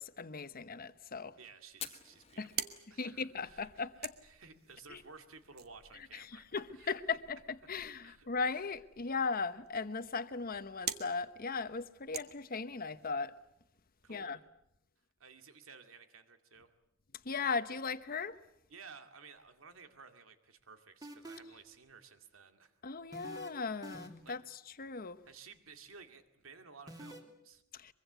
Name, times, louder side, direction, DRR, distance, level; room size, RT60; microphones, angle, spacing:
voice 1, 0.0-1.4 2.4-2.5 3.0-4.1 4.9-5.0 6.1-7.4 7.7-13.3 14.1-14.4 17.2-18.4 22.8-25.2 27.7-27.9, left 4 dB, 45° left, 1.0 m, -38 dB
voice 2, 1.4-6.9 8.0-8.3 14.0-14.4 15.2-16.7 18.7-22.7 24.2-24.4 25.3-27.6, right 5 dB, 80° right, 2.3 m, -55 dB
Fire, 1.7-10.9, left 8 dB, 30° left, 1.8 m, -56 dB
sound 1, 2.2-13.1, right 9 dB, 50° right, 1.4 m, -48 dB
sound 2, 21.0-21.6 23.1-23.5 23.8-24.4 26.9-27.2, right 1 dB, 20° right, 3.0 m, -47 dB
23.5 x 23.5 x 8.1 m
head